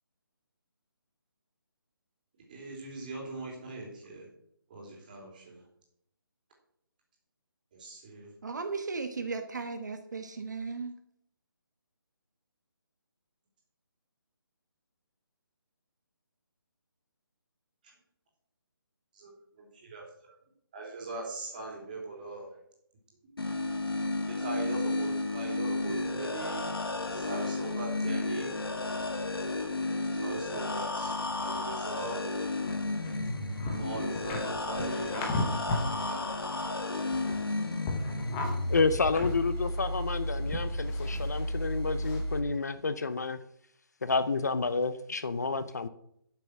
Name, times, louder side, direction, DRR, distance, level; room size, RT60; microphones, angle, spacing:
voice 1, 2.5-4.3 4.7-5.6 7.7-8.3 17.8-17.9 19.1-19.3 19.6-20.3 20.7-22.5 24.3-26.7 27.1-28.5 30.0-32.2 33.7-35.4 35.9-36.3, right 2 dB, 20° right, -2 dB, 3.2 m, -41 dB
voice 2, 8.4-10.9, right 4 dB, 50° right, 6 dB, 1.2 m, -36 dB
sound 1, 23.4-42.4, left 2 dB, 75° left, 2.1 m, -33 dB
sound 2, 32.7-36.0 36.3-37.5 37.8-40.1 40.5-41.5 42.0-42.2, left 2 dB, 10° left, 0.8 m, -36 dB
voice 3, 38.7-43.4 44.0-45.9, left 4 dB, 45° left, 13 dB, 0.6 m, -30 dB
11.5 x 6.7 x 6.3 m, 0.73 s
hypercardioid pair, 175°, 12 cm